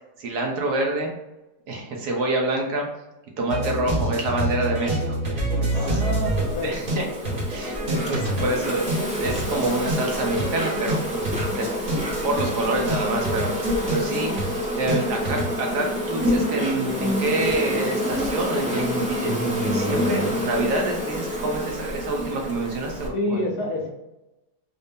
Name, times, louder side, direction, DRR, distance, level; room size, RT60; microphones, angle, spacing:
voice 1, 0.2-1.1 1.7-2.9 3.4-6.0 6.6-11.2 11.5-11.9 12.2-23.4, right 2 dB, 65° right, 0 dB, 1.3 m, -27 dB
sound 1, 3.5-15.6, right 1 dB, 40° right, 1.2 m, -27 dB
voice 2, 5.7-6.7 23.1-23.9, left 1 dB, 65° left, 0 dB, 1.2 m, -27 dB
Insect, 5.7-23.1, left 1 dB, 10° right, 0.4 m, -28 dB
4.0 x 2.0 x 3.5 m, 0.95 s
omnidirectional pair, 2.0 m